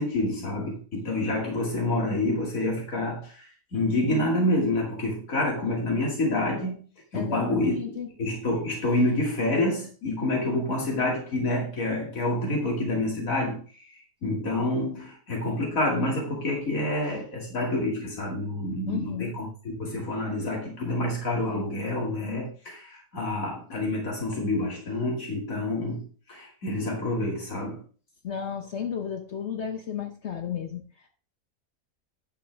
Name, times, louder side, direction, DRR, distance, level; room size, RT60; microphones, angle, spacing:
voice 1, 0.0-6.8 7.1-7.8 8.2-27.8, left 1 dB, 85° left, -1 dB, 2.8 m, -28 dB
voice 2, 7.1-8.1 18.9-19.4 28.2-31.1, left 8 dB, 60° left, 4 dB, 1.2 m, -33 dB
10.5 x 7.6 x 3.5 m, 0.38 s
omnidirectional pair, 1.4 m